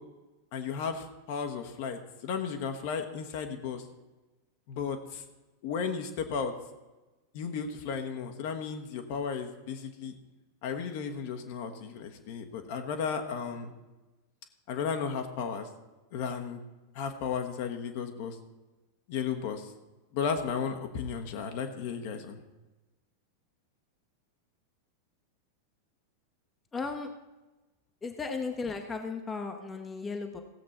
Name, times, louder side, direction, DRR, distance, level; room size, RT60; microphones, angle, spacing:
voice 1, 0.5-3.8 4.7-5.2 5.6-6.5 7.3-10.1 10.6-13.7 14.7-15.7 16.1-16.6 16.9-18.4 19.1-19.7 20.1-22.4, left 6 dB, 50° left, 5 dB, 1.2 m, -34 dB
voice 2, 26.7-27.1 28.0-30.4, left 4 dB, 15° left, 5 dB, 1.0 m, -35 dB
16.5 x 7.5 x 4.3 m, 1.1 s
figure-of-eight pair, 90°, 0 cm